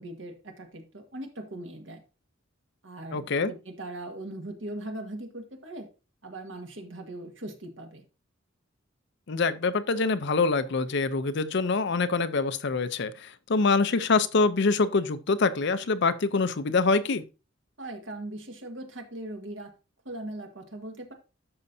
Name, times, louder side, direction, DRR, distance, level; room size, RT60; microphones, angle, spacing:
voice 1, 0.0-2.0 2.8-5.9 6.2-8.0 17.8-19.7 20.0-21.1, right 1 dB, 70° right, 1.7 m, -40 dB
voice 2, 3.1-3.5 9.3-17.2, left 4 dB, 60° left, 0.6 m, -25 dB
12.5 x 5.3 x 2.7 m
head